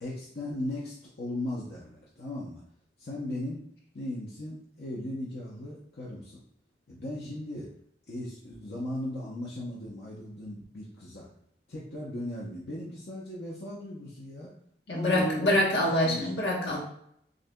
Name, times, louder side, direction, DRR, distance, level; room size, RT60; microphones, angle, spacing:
voice 1, 0.0-2.6 3.0-3.6 3.9-6.4 6.9-7.7 8.1-11.3 11.7-14.5 14.9-15.7 16.0-16.3, left 1 dB, 60° left, -5 dB, 0.8 m, -37 dB
voice 2, 14.9-16.8, left 1 dB, 80° left, -3 dB, 1.1 m, -25 dB
6.3 x 2.7 x 2.2 m, 0.70 s
head